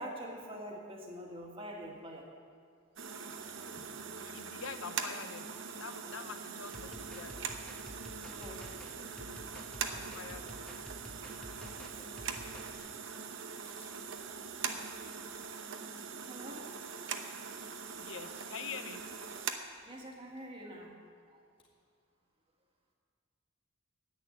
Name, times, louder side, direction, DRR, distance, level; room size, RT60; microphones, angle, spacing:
voice 1, 0.0-2.3 8.0-8.7 9.1-9.2 11.2-13.0 13.2-13.3 13.9-14.0 14.7-14.8 15.8-16.7 17.5-17.6 19.9-21.0 21.3-21.4, equal, 25° right, 0 dB, 1.8 m, -47 dB
sound 1, 3.0-19.5, right 6 dB, 65° right, 0.9 m, -42 dB
voice 2, 4.1-5.5 5.8-7.4 9.8-10.6 18.0-19.0 19.8-19.9, left 6 dB, 70° left, 9 dB, 0.8 m, -45 dB
sound 2, 6.6-12.8, equal, 5° left, 1.0 m, -51 dB
sound 3, 12.8-12.9 13.6-14.0 14.9-15.9 16.2-16.3 17.3-18.3 18.8-18.9 19.2-20.4 21.6-21.7, left 4 dB, 25° left, 2.0 m, -64 dB
10.5 x 9.1 x 8.6 m, 2.1 s
head